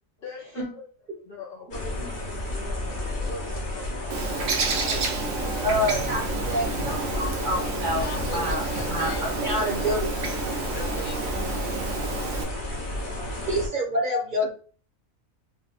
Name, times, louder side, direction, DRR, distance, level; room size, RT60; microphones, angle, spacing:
voice 1, 0.2-0.8 1.3-4.8, left 4 dB, 55° left, 0.7 m, -42 dB
sound 1, 1.7-13.7, left 1 dB, 40° left, 1.0 m, -31 dB
Bird, 4.1-12.4, right 4 dB, 70° right, 1.0 m, -30 dB
voice 2, 4.7-5.0 5.6-10.1 13.5-14.5, equal, 40° right, 0.9 m, -28 dB
voice 3, 7.9-11.2, left 5 dB, 85° left, 1.0 m, -40 dB
4.2 x 2.2 x 2.4 m
omnidirectional pair, 1.4 m